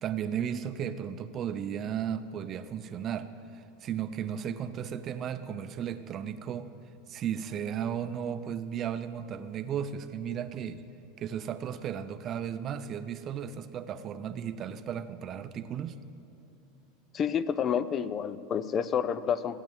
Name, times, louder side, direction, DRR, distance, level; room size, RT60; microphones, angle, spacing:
voice 1, 0.0-6.7 7.1-10.8 11.2-15.9, right 8 dB, 35° right, 10 dB, 0.7 m, -35 dB
voice 2, 17.1-19.6, left 8 dB, 30° left, 15 dB, 0.5 m, -29 dB
15.0 x 9.1 x 7.5 m, 2.8 s
supercardioid pair, 130°, 0 cm